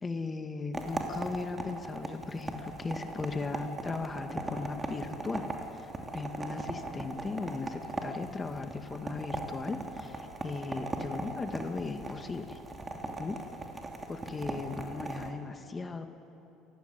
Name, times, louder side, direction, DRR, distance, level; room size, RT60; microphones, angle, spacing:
voice 1, 0.0-5.5 5.7-12.6 13.2-13.4 14.1-16.1, left 4 dB, 25° left, 7 dB, 2.1 m, -37 dB
sound 1, 0.7-15.3, right 2 dB, 25° right, 2.9 m, -39 dB
26.5 x 15.0 x 9.6 m, 2.9 s
hypercardioid pair, 75°, 0 cm